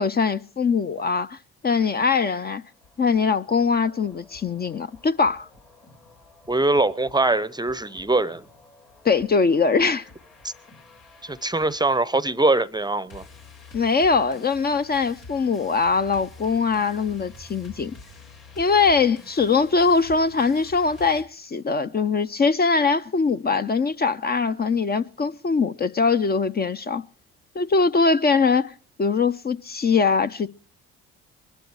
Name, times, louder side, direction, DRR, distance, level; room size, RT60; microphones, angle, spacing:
voice 1, 0.0-1.4 1.6-2.6 3.0-5.5 9.0-10.1 13.7-17.9 18.6-27.0 27.5-28.7 29.0-30.5, left 4 dB, 30° left, 0.7 m, -22 dB
sound 1, 2.6-21.2, left 3 dB, 80° left, 3.5 m, -48 dB
voice 2, 6.5-8.4 10.4-10.5 11.2-13.3, right 2 dB, 15° right, 0.7 m, -22 dB
21.0 x 12.0 x 4.8 m
hypercardioid pair, 55°, 31 cm